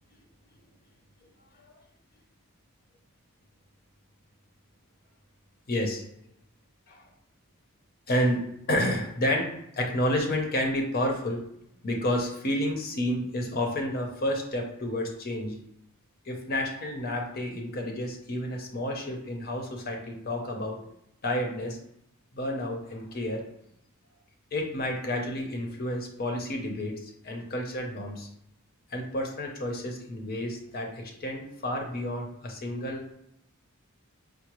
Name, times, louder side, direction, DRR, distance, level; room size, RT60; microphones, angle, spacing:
voice 1, 5.7-6.0 6.9-7.0 8.1-8.4 8.7-11.4 11.8-15.6 16.3-20.8 21.2-21.8 22.3-23.4 24.5-28.3 28.9-33.1, left 1 dB, 45° left, 2 dB, 0.6 m, -30 dB
4.8 x 2.0 x 2.9 m, 0.76 s
head